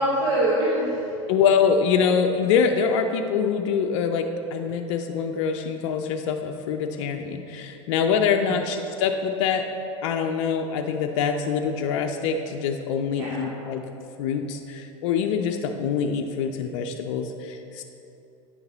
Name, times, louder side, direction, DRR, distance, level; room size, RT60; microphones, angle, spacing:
voice 1, 0.0-1.1 8.4-8.6 13.1-13.4, right 1 dB, 60° right, -6 dB, 1.3 m, -24 dB
voice 2, 1.3-9.7 10.0-13.8 14.2-17.8, left 6 dB, 60° left, 5 dB, 0.5 m, -24 dB
9.0 x 6.4 x 2.9 m, 2.8 s
hypercardioid pair, 80°, 17 cm